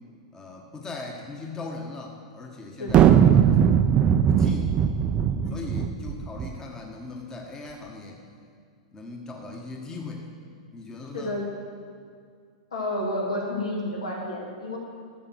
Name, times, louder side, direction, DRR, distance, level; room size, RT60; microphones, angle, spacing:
voice 1, 0.3-3.8 4.3-4.8 5.5-8.2 8.9-10.3 10.7-11.4, left 3 dB, 20° left, 1 dB, 1.3 m, -39 dB
voice 2, 2.8-3.2 5.4-5.8 11.1-11.5 12.7-14.8, left 1 dB, 80° left, -2 dB, 2.6 m, -31 dB
sound 1, 2.9-6.5, right 9 dB, 30° right, 0.4 m, -19 dB
13.0 x 6.9 x 6.1 m, 2.2 s
hypercardioid pair, 105°, 3 cm